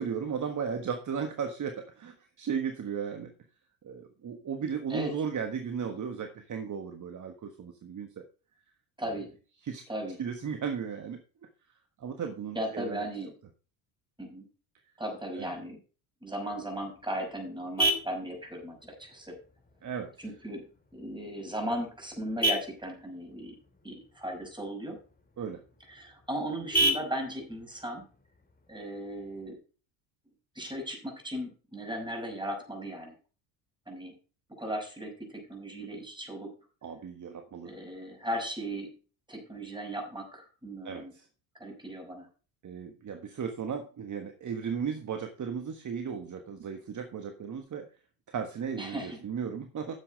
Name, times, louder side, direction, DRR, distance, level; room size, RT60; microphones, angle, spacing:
voice 1, 0.0-3.3 3.8-8.2 9.6-9.8 10.2-11.2 12.0-13.0 15.4-15.5 19.8-20.1 25.4-25.6 36.8-37.7 40.8-41.3 42.6-47.9 48.3-50.0, right 7 dB, 35° right, 7 dB, 1.5 m, -35 dB
voice 2, 9.0-9.3 9.9-10.2 12.5-13.3 14.2-14.5 15.0-15.8 16.2-19.4 20.2-20.6 20.9-23.5 23.8-25.0 25.9-28.0 28.7-29.6 30.5-33.2 33.9-34.1 34.6-36.5 37.6-39.0 39.3-41.1 41.6-42.3 48.7-49.2, right 1 dB, 10° right, 2 dB, 5.8 m, -37 dB
Vehicle horn car horn honking, 16.5-29.5, right 1 dB, 15° left, 2.7 m, -36 dB
9.8 x 7.4 x 5.2 m, 0.37 s
hypercardioid pair, 75°, 50 cm